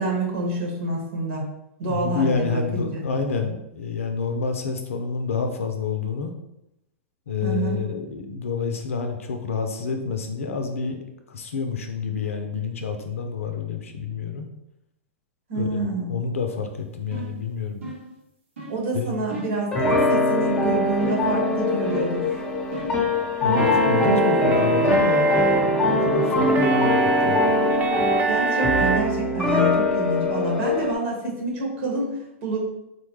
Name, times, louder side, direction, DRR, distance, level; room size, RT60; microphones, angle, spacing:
voice 1, 0.0-1.5 1.8-3.0 7.4-7.8 15.5-16.1 18.7-22.4 28.3-32.6, right 2 dB, 70° right, -2 dB, 1.5 m, -27 dB
voice 2, 1.8-6.3 7.3-11.0 11.3-14.5 15.5-17.8 18.9-19.2 23.4-27.4, left 4 dB, 85° left, 5 dB, 0.4 m, -28 dB
sound 1, 17.1-17.4 17.8-18.1 18.6-18.8 19.3-19.6 21.0-21.4 21.9-22.3 22.7-23.1 23.6-23.9, right 1 dB, 85° right, 1.3 m, -35 dB
sound 2, 19.7-30.9, left 2 dB, 15° left, 0.8 m, -22 dB
sound 3, 23.5-29.0, right 3 dB, 25° right, 0.5 m, -24 dB
4.1 x 2.1 x 3.2 m, 0.86 s
hypercardioid pair, 110°, 7 cm